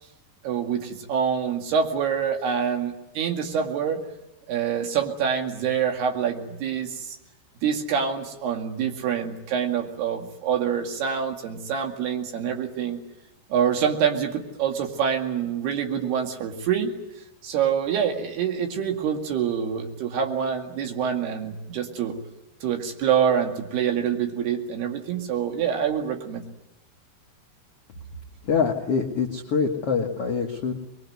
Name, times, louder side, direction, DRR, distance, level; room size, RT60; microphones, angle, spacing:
voice 1, 0.4-4.0 4.5-7.2 7.6-13.0 13.5-16.9 17.4-22.2 22.6-26.4, right 7 dB, 65° right, 4 dB, 4.0 m, -26 dB
voice 2, 28.4-30.7, left 5 dB, 70° left, 2 dB, 1.3 m, -25 dB
23.5 x 22.0 x 9.5 m, 0.93 s
omnidirectional pair, 5.2 m